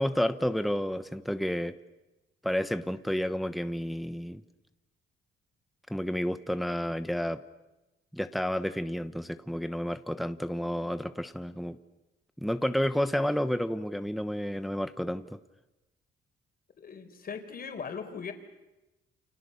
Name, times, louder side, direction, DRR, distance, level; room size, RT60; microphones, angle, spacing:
voice 1, 0.0-1.8 2.4-4.4 5.9-7.4 8.1-11.8 12.4-15.4, equal, ahead, 11 dB, 1.0 m, -30 dB
voice 2, 16.8-18.3, left 6 dB, 50° left, 7 dB, 4.4 m, -39 dB
29.5 x 27.5 x 6.9 m, 1.0 s
cardioid pair, 90°, 20 cm